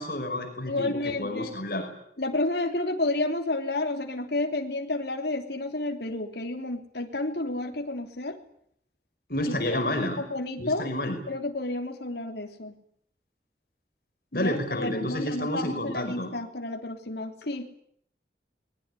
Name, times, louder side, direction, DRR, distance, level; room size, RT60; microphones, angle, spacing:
voice 1, 0.0-1.9 9.3-10.3 10.6-11.2 14.3-16.3, left 1 dB, 55° left, 5 dB, 5.4 m, -30 dB
voice 2, 0.7-1.5 2.2-8.4 9.4-9.5 10.3-10.9 11.3-12.7 14.3-17.8, left 2 dB, 75° left, 3 dB, 3.3 m, -31 dB
24.5 x 21.0 x 10.0 m, 0.69 s
head